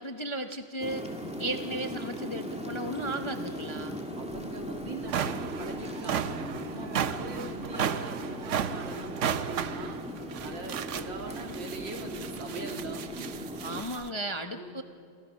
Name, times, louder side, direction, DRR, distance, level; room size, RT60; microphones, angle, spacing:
voice 1, 0.0-1.1 1.4-4.0 13.6-14.8, right 1 dB, 25° left, 6 dB, 0.7 m, -35 dB
sound 1, 0.8-13.8, equal, 5° right, 2.1 m, -38 dB
voice 2, 4.1-10.0 10.4-13.4 14.5-14.7, right 2 dB, 90° right, 2 dB, 3.5 m, -41 dB
sound 2, 4.3-4.4 4.9-14.1, right 8 dB, 60° right, 0.8 m, -34 dB
28.0 x 26.5 x 6.4 m, 2.3 s
omnidirectional pair, 1.9 m